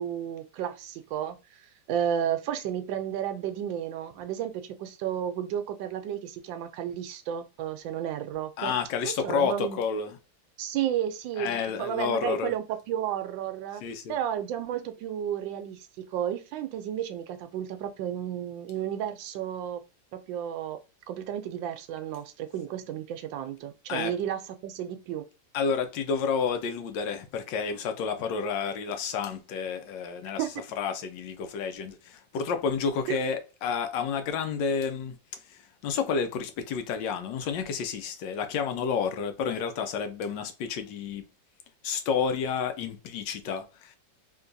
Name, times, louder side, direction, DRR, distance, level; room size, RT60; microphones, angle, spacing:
voice 1, 0.0-8.7 9.0-9.8 10.6-13.8 14.1-19.8 20.1-20.8 21.1-25.2 30.4-30.5 33.1-33.2, right 10 dB, 85° right, 1.3 m, -32 dB
voice 2, 8.6-10.2 11.4-12.5 13.8-14.2 23.9-24.1 25.5-30.4 30.8-35.2 35.5-41.2 41.8-44.0, left 6 dB, 80° left, 1.3 m, -30 dB
3.7 x 2.8 x 2.6 m
omnidirectional pair, 2.0 m